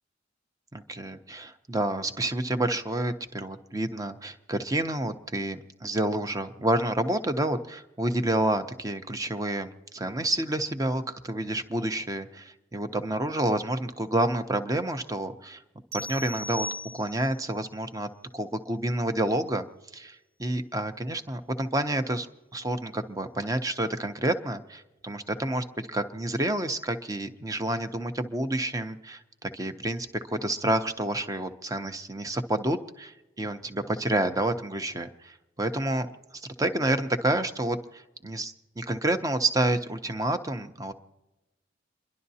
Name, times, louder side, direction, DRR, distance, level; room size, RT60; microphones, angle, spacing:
voice 1, 0.7-15.6 15.9-16.7 16.9-19.7 19.9-22.3 22.5-36.1 36.3-40.9, right 1 dB, 20° right, 8 dB, 0.7 m, -29 dB
sound 1, 15.9-17.5, left 1 dB, 50° right, 0.7 m, -37 dB
28.5 x 11.5 x 2.8 m, 1.0 s
head